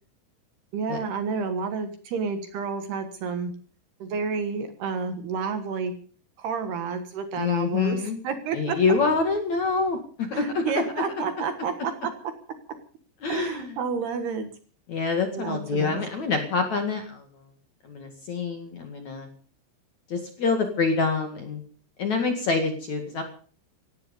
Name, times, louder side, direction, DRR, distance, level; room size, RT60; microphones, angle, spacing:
voice 1, 0.7-3.5 4.0-5.9 6.4-8.8 10.3-11.9 13.3-14.5 15.3-16.0, right 5 dB, 65° right, 8 dB, 2.9 m, -30 dB
voice 2, 7.4-8.2 8.5-10.6 13.2-13.8 14.9-17.3 17.8-19.3 20.1-21.6 22.0-23.2, left 4 dB, 50° left, 5 dB, 2.4 m, -26 dB
17.5 x 15.0 x 5.4 m, 0.43 s
omnidirectional pair, 6.0 m